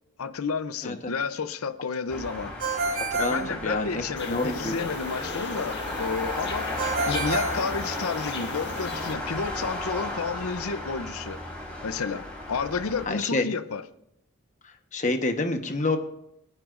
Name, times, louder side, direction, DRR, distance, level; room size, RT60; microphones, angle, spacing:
voice 1, 0.2-2.5 3.2-11.4 11.8-13.8, left 5 dB, 85° left, 0.7 m, -31 dB
sound 1, 2.1-13.1, left 1 dB, 5° left, 3.3 m, -35 dB
Ringtone, 2.6-4.3 6.8-8.5, right 3 dB, 85° right, 3.7 m, -30 dB
voice 2, 3.1-4.8 13.1-13.4 14.6-16.0, left 2 dB, 35° left, 1.2 m, -28 dB
sound 2, 4.2-9.1, left 4 dB, 50° left, 1.6 m, -36 dB
27.5 x 9.7 x 2.6 m
head